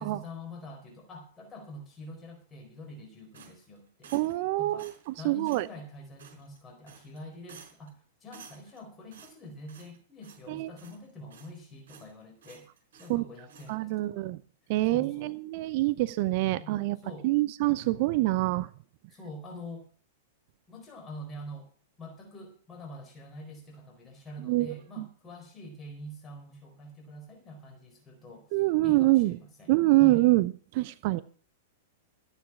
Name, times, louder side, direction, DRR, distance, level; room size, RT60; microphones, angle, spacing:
voice 1, 0.0-4.1 4.6-4.9 5.2-12.7 13.0-14.3 14.9-15.4 16.5-17.3 19.1-19.9 20.7-21.7 22.0-30.3, left 1 dB, 25° left, 4 dB, 4.3 m, -45 dB
sound 1, 3.3-4.5 4.8-5.1 5.5-5.7 6.2-6.6 6.9-7.2 7.5-7.9 8.3-8.8 9.1-10.0 10.2-10.5 10.8-11.6 11.9-12.1 12.4-13.2 13.5-13.7, right 7 dB, 65° right, 4.8 m, -53 dB
voice 2, 4.1-4.9 5.2-5.7 10.5-10.7 13.1-13.2 13.7-14.4 14.7-17.0 17.2-18.7 24.4-25.0 28.5-29.4 29.7-31.2, right 19 dB, 50° right, 15 dB, 0.7 m, -25 dB
14.5 x 9.9 x 4.9 m, 0.43 s
figure-of-eight pair, 100°, 0 cm